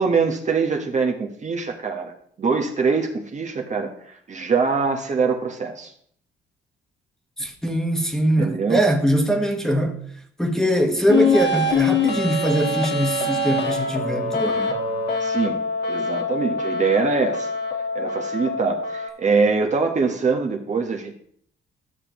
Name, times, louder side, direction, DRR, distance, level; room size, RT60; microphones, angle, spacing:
voice 1, 0.0-2.1 2.4-5.9 8.4-8.8 15.2-15.6 15.9-17.5 17.9-21.2, right 4 dB, 35° right, 1.1 m, -23 dB
voice 2, 7.4-10.0 10.4-14.8, right 1 dB, ahead, 1.4 m, -22 dB
sound 1, 11.1-19.1, left 3 dB, 60° left, 1.5 m, -24 dB
12.5 x 6.6 x 3.0 m
cardioid pair, 90°, 20 cm